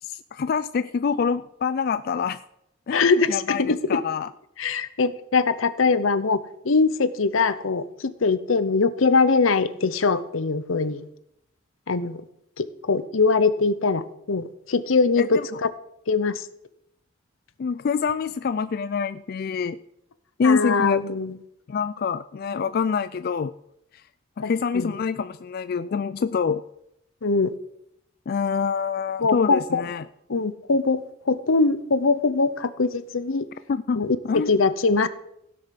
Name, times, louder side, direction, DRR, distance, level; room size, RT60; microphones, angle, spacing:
voice 1, 0.0-2.4 2.9-4.3 15.2-15.6 17.6-19.8 20.4-21.0 21.7-23.5 24.4-26.6 28.3-30.0 33.7-34.5, left 5 dB, 50° left, 13 dB, 0.3 m, -26 dB
voice 2, 2.9-4.0 4.6-11.0 11.9-12.2 12.6-15.7 16.1-16.5 20.4-21.4 24.4-24.9 27.2-27.5 29.2-29.8 30.3-33.5 34.0-35.1, left 4 dB, 85° left, 14 dB, 0.8 m, -22 dB
16.0 x 6.6 x 5.9 m, 0.78 s
head